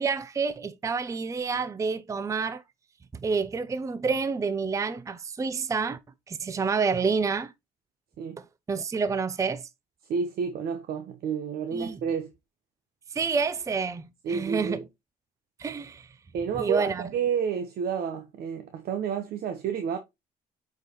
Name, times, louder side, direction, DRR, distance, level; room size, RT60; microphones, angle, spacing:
voice 1, 0.0-2.6 3.1-6.0 6.3-7.5 8.4-9.7 11.7-12.0 13.1-14.9 15.6-16.2 16.6-17.1, right 5 dB, 20° right, 0.5 m, -28 dB
voice 2, 10.1-12.3 14.2-14.8 16.3-20.0, right 7 dB, 65° right, 1.1 m, -30 dB
8.1 x 4.7 x 3.0 m
cardioid pair, 110°, 17 cm